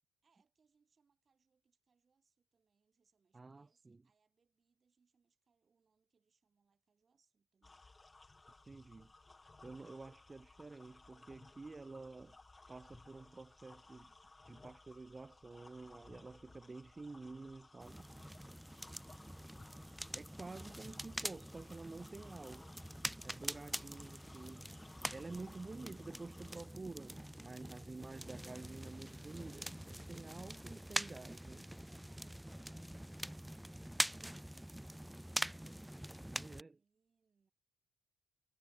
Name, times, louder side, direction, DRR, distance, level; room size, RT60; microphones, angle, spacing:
voice 1, 0.2-7.8 18.5-19.4 25.3-25.4 30.8-31.1 31.7-36.0 36.3-37.5, right 5 dB, 40° right, 3.9 m, -79 dB
voice 2, 3.3-4.0 8.6-9.1 9.6-12.4 12.7-14.1 14.5-18.1 20.1-22.7 23.2-24.7 25.1-31.7 36.3-36.8, right 3 dB, 25° right, 0.7 m, -50 dB
sound 1, 7.6-26.7, left 3 dB, 20° left, 2.2 m, -61 dB
sound 2, 17.8-36.6, equal, 5° right, 0.3 m, -45 dB
cardioid pair, 90°, 0 cm